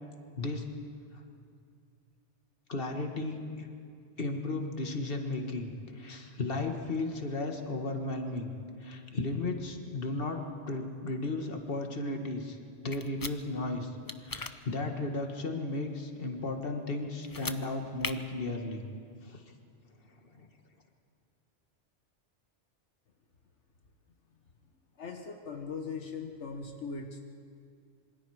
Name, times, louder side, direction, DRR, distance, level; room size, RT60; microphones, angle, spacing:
voice 1, 2.7-3.7 4.2-5.7 6.0-8.5 8.8-12.6 12.8-13.9 14.2-18.8 19.2-19.4 20.3-20.5, left 2 dB, 50° left, 4 dB, 2.0 m, -34 dB
sound 1, 12.9-13.3 14.1-14.5 17.2-17.6 18.0-18.1, left 3 dB, 20° left, 0.6 m, -37 dB
voice 2, 25.0-27.2, left 4 dB, 75° left, 3 dB, 1.6 m, -39 dB
27.0 x 25.5 x 4.9 m, 2.3 s
omnidirectional pair, 1.2 m